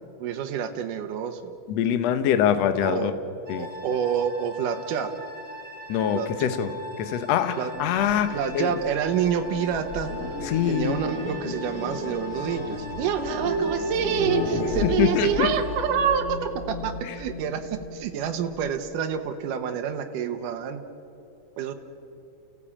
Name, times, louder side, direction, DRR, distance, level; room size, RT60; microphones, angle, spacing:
voice 1, 0.2-1.5 2.8-3.1 3.6-5.1 6.1-6.5 7.6-7.7 8.3-10.1 10.7-20.8 21.6-21.7, right 8 dB, 80° right, 6 dB, 2.7 m, -27 dB
voice 2, 1.7-3.1 3.5-3.7 5.9-6.7 7.0-8.7 10.5-11.0 14.8-15.5, left 9 dB, 65° left, 10 dB, 2.0 m, -24 dB
sound 1, 3.5-16.0, left 1 dB, 30° right, 3.3 m, -41 dB
sound 2, 7.7-18.7, left 1 dB, 25° left, 2.0 m, -33 dB
29.5 x 16.5 x 8.7 m, 2.7 s
omnidirectional pair, 3.8 m